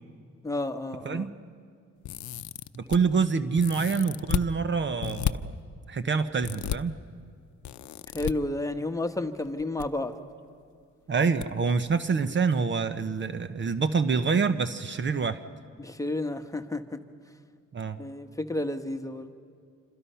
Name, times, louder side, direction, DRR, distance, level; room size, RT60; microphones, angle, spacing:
voice 1, 0.4-1.3 8.1-10.1 15.8-17.0 18.0-19.3, left 2 dB, 10° left, 7 dB, 1.2 m, -31 dB
sound 1, 2.0-3.0 3.6-4.5 5.0-5.3 6.4-6.8 7.6-8.3 9.5-9.9 10.1-10.2 11.4-11.5 11.9-12.0, left 13 dB, 70° left, 0.7 m, -32 dB
voice 2, 2.8-5.6 5.9-7.0 11.1-15.4 17.7-18.0, right 5 dB, 40° right, 11 dB, 0.9 m, -26 dB
27.5 x 26.5 x 5.7 m, 2.2 s
cardioid pair, 90°, 30 cm